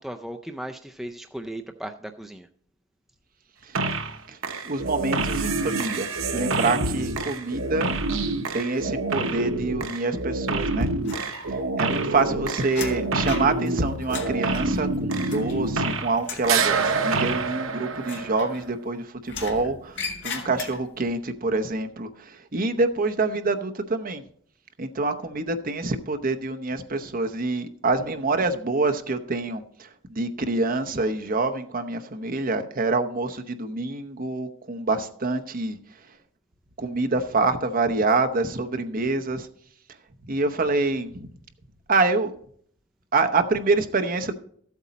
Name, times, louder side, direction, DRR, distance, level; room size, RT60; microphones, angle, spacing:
voice 1, 0.0-2.5, right 1 dB, ahead, 4 dB, 0.4 m, -36 dB
sound 1, 3.7-4.2 4.4-16.2 16.4-18.6, right 3 dB, 75° right, 1.0 m, -27 dB
voice 2, 4.6-6.1 6.3-7.9 8.5-10.9 11.5-24.2 24.8-35.8 36.8-39.5 40.3-41.1 41.9-42.3 43.1-44.3, right 3 dB, 45° right, 7 dB, 0.8 m, -26 dB
sound 2, 11.1-11.8 12.1-15.9 16.2-16.6 18.0-18.9 19.3-21.1, left 4 dB, 60° left, 1.8 m, -38 dB
13.5 x 8.2 x 4.1 m, 0.62 s
head